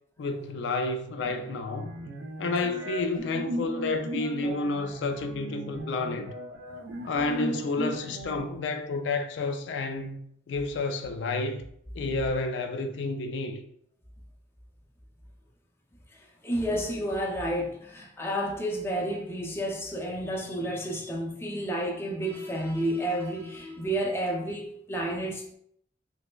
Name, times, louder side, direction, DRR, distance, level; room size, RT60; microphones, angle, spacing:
voice 1, 0.2-1.9 2.4-6.3 7.0-10.2 10.5-11.6 11.9-13.6, left 3 dB, 75° left, 0.3 m, -30 dB
sound 1, 1.2-8.4, right 1 dB, 80° right, 0.5 m, -37 dB
voice 2, 16.4-25.5, right 1 dB, 15° left, 0.5 m, -31 dB
3.3 x 3.0 x 2.2 m
head